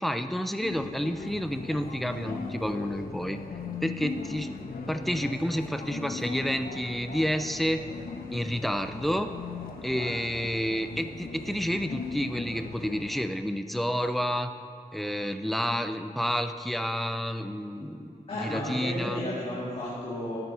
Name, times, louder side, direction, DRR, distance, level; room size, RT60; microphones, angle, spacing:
voice 1, 0.0-3.4 3.8-4.5 4.9-7.8 8.3-9.3 9.8-14.5 14.9-19.2, equal, ahead, 8 dB, 0.5 m, -30 dB
sound 1, 0.6-13.2, left 4 dB, 80° left, 1.0 m, -39 dB
voice 2, 18.3-20.4, left 1 dB, 45° left, -8 dB, 2.1 m, -33 dB
13.0 x 9.3 x 4.3 m, 2.6 s
wide cardioid pair, 155°, 15 cm